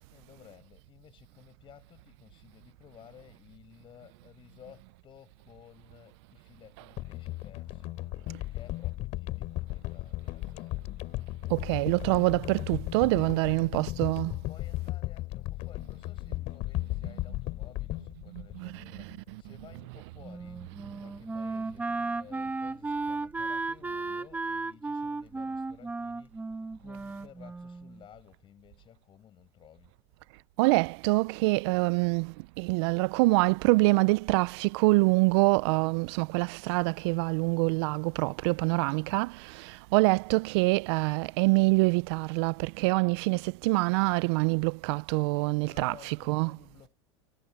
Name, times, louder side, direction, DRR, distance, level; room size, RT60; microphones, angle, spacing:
voice 1, 0.1-8.2 8.5-10.9 13.0-14.1 14.5-26.4 26.8-29.9 45.3-47.0, left 10 dB, 35° left, 7.5 m, -55 dB
sound 1, 7.0-19.3 19.6-19.7, left 18 dB, 50° left, 3.4 m, -36 dB
voice 2, 11.5-14.4 18.3-19.9 30.6-46.6, right 26 dB, 65° right, 0.5 m, -26 dB
Wind instrument woodwind instrument, 20.2-28.0, right 3 dB, 10° right, 1.3 m, -35 dB
supercardioid pair, 115°, 15 cm